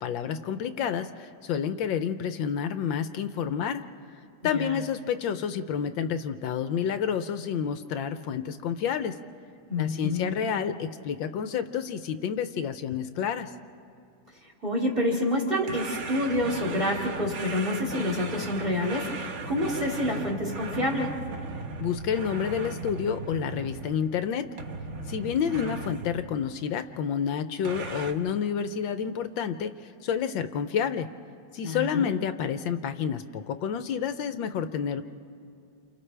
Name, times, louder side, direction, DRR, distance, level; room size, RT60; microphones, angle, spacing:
voice 1, 0.0-3.8 4.4-9.1 9.8-13.5 21.8-24.5 25.1-29.7 30.0-31.1 31.5-35.0, left 7 dB, 70° left, 10 dB, 1.3 m, -29 dB
voice 2, 9.7-10.3 14.6-21.2 31.6-32.1, left 1 dB, 25° right, -1 dB, 2.9 m, -28 dB
sound 1, 15.7-24.2 24.6-26.3 27.6-28.1, right 3 dB, 45° right, 1.0 m, -37 dB
29.5 x 28.5 x 3.3 m, 2.5 s
omnidirectional pair, 2.4 m